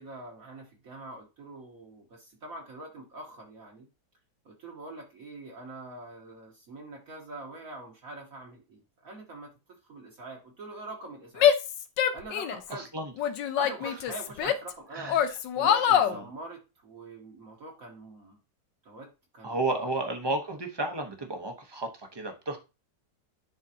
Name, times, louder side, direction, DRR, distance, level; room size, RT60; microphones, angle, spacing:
voice 1, 0.0-3.9 4.4-9.5 9.8-11.5 12.1-12.9 13.6-15.1 15.5-18.4 18.8-19.6, right 2 dB, 55° right, 0 dB, 1.4 m, -44 dB
Female speech woman speaking / Yell, 11.4-12.7 13.2-14.7 15.1-16.2, left 9 dB, 85° left, 1.4 m, -24 dB
voice 2, 12.7-13.1 13.8-13.9 14.9-15.2 15.9-16.2 19.4-22.6, right 2 dB, 25° right, 5 dB, 0.6 m, -32 dB
10.5 x 3.7 x 2.8 m, 0.28 s
omnidirectional pair, 1.9 m